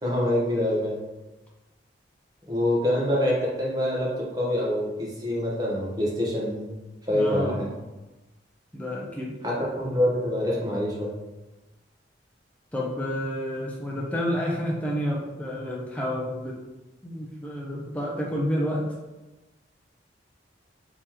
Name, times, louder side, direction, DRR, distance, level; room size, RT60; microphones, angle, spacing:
voice 1, 0.0-1.0 2.5-6.7 7.0-7.7 9.4-11.1, left 1 dB, 20° right, -4 dB, 1.0 m, -25 dB
voice 2, 7.1-7.6 8.7-9.3 12.7-16.6 17.0-18.8, equal, 5° left, -3 dB, 0.6 m, -29 dB
3.7 x 3.0 x 4.4 m, 1.1 s
head